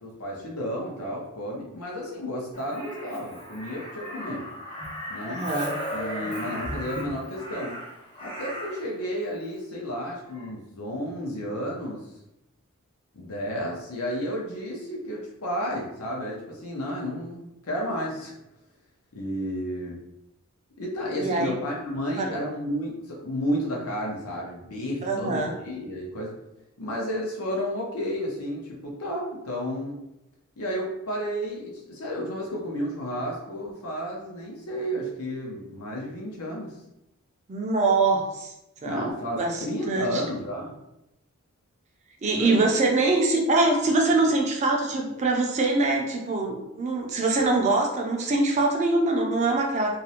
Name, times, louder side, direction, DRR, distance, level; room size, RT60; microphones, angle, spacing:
voice 1, 0.0-4.5 5.1-5.4 5.9-7.8 8.2-12.0 13.1-18.3 19.1-20.0 20.8-26.3 26.8-30.0 30.6-36.7 38.8-40.8 42.3-42.7, equal, 90° left, -2 dB, 0.7 m, -32 dB
Crow, 2.5-8.9 10.3-10.5, equal, 25° left, 0.6 m, -36 dB
voice 2, 5.2-5.7 21.1-21.5 22.2-22.4 25.0-25.5 37.5-38.5 38.8-39.1 39.4-40.2 42.2-50.0, right 2 dB, 30° right, 1 dB, 0.4 m, -24 dB
2.5 x 2.0 x 2.8 m, 0.88 s
head